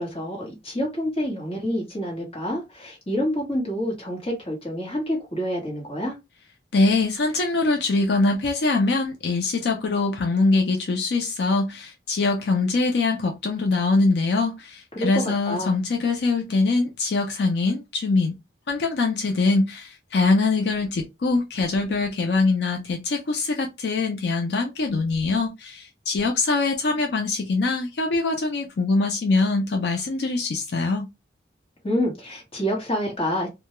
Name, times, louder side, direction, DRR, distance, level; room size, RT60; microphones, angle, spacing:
voice 1, 0.0-6.1 14.9-15.7 31.8-33.5, equal, 30° left, 1.1 m, -27 dB
voice 2, 6.7-18.3 18.7-31.1, left 3 dB, 75° left, 0.5 m, -23 dB
2.2 x 2.2 x 2.9 m
head